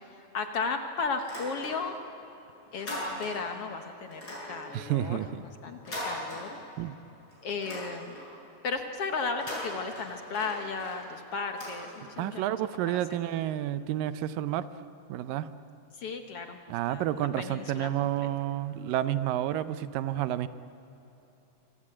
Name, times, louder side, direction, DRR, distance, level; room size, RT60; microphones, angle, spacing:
voice 1, 0.3-2.0 2.7-4.2 4.5-6.6 7.4-8.2 8.6-12.4 12.9-13.0 15.9-16.6 16.9-18.3, left 4 dB, 60° left, 6 dB, 1.7 m, -35 dB
sound 1, 1.3-2.1 2.4-3.6 4.1-6.9 7.3-8.4 9.2-12.3, left 1 dB, 25° left, 8.5 m, -40 dB
voice 2, 4.7-5.3 6.8-6.9 12.2-14.7 15.1-15.5 16.7-20.5, right 12 dB, 80° right, 13 dB, 2.5 m, -30 dB
25.5 x 25.5 x 8.8 m, 3.0 s
omnidirectional pair, 4.0 m